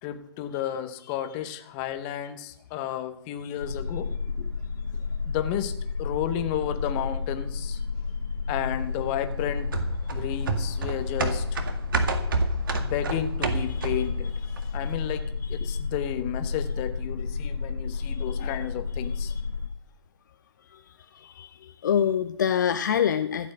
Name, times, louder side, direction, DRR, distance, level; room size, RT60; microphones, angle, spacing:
voice 1, 0.0-4.5 5.3-5.7 6.0-7.8 8.5-9.8 10.1-11.6 12.7-14.3 14.7-15.2 15.5-19.3, left 11 dB, 25° left, 9 dB, 1.2 m, -32 dB
sound 1, 3.6-19.7, left 4 dB, 80° left, 1.4 m, -31 dB
sound 2, 9.7-14.2 14.6-14.7, right 4 dB, 50° right, 1.9 m, -29 dB
voice 2, 21.1-23.5, left 8 dB, 45° left, 8 dB, 0.7 m, -26 dB
14.5 x 7.6 x 7.7 m, 0.70 s
figure-of-eight pair, 135°, 14 cm